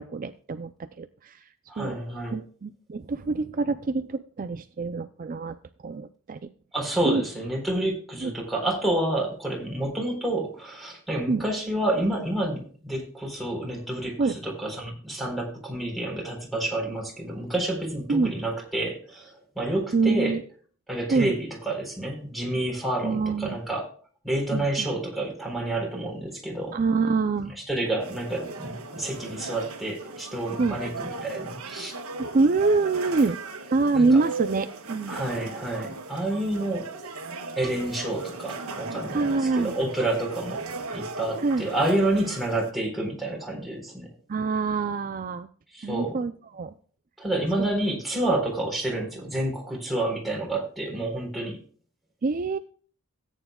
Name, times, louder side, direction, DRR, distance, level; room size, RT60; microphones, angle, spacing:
voice 1, 0.0-1.5 1.8-2.0 2.3-5.6 5.8-6.5 7.0-7.2 8.2-8.3 11.3-11.4 14.2-14.4 18.1-18.3 19.9-20.4 21.1-21.3 23.0-23.6 24.5-24.9 26.7-27.5 30.6-30.8 32.2-33.4 33.7-35.2 39.1-39.7 41.4-41.7 44.3-45.5 45.8-46.7 47.6-47.7 52.2-52.6, right 3 dB, 40° right, 10 dB, 0.5 m, -25 dB
voice 2, 1.7-2.4 6.7-20.4 20.9-23.9 24.2-26.8 27.7-31.9 33.9-34.2 35.1-36.9 37.6-40.6 40.9-44.1 45.7-46.2 47.2-51.6, right 1 dB, ahead, -1 dB, 4.1 m, -29 dB
sound 1, 28.0-42.7, right 3 dB, 85° right, 1.5 m, -37 dB
17.5 x 9.3 x 2.3 m, 0.43 s
head